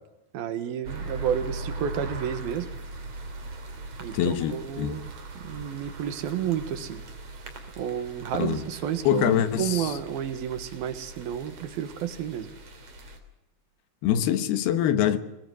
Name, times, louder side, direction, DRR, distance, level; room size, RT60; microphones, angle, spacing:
voice 1, 0.3-2.7 4.0-5.1 5.4-7.0 7.8-12.5, right 9 dB, 70° right, 3.1 m, -31 dB
sound 1, 0.8-13.2, right 2 dB, 45° right, 3.7 m, -40 dB
voice 2, 4.1-5.1 8.4-8.7 9.0-10.0 14.0-15.2, left 10 dB, 80° left, 3.1 m, -24 dB
21.0 x 20.0 x 7.8 m
omnidirectional pair, 4.6 m